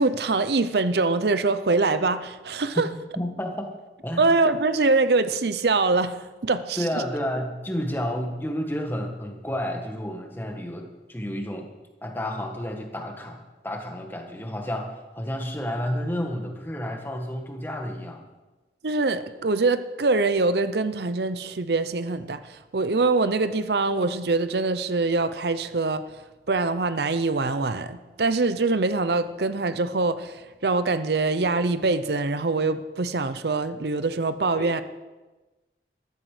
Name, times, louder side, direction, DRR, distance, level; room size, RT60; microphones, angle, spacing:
voice 1, 0.0-2.9 4.2-6.8 18.8-26.0 26.5-34.8, right 3 dB, 70° right, 12 dB, 0.7 m, -24 dB
voice 2, 3.2-3.7 4.0-4.3 6.8-11.7 12.0-18.2 34.6-34.7, equal, 10° left, 3 dB, 1.6 m, -31 dB
14.0 x 13.5 x 5.0 m, 1.2 s
head